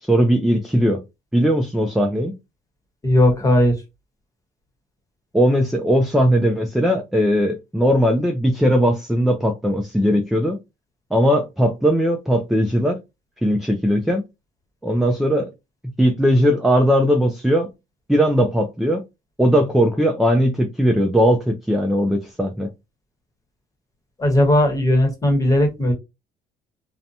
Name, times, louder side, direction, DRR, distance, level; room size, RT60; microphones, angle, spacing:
voice 1, 0.0-1.0 1.3-2.3 5.3-10.6 11.1-13.0 13.4-14.2 14.8-15.5 16.0-17.7 18.1-19.0 19.4-22.7, equal, ahead, 0.4 m, -18 dB
voice 2, 3.0-3.8 24.2-25.9, left 1 dB, 20° left, 1.1 m, -17 dB
2.7 x 2.2 x 2.7 m
cardioid pair, 110°, 17 cm